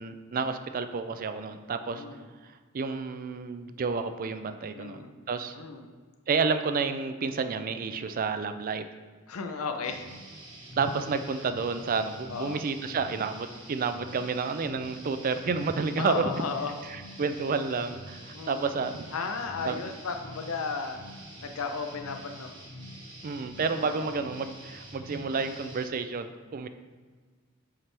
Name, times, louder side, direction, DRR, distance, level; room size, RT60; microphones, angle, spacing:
voice 1, 0.0-2.0 2.4-5.0 5.3-5.6 6.3-8.8 10.8-16.3 16.9-19.0 19.6-19.8 23.2-26.7, right 4 dB, 40° right, 9 dB, 0.4 m, -30 dB
voice 2, 1.9-2.3 4.7-5.1 5.5-5.9 9.3-10.0 12.3-12.6 16.0-16.8 18.3-18.7 19.1-21.0 21.4-22.5 23.8-24.1, left 4 dB, 80° left, 5 dB, 0.6 m, -34 dB
sound 1, 9.8-25.9, right 1 dB, 20° right, 1.2 m, -45 dB
7.2 x 4.4 x 3.4 m, 1.5 s
head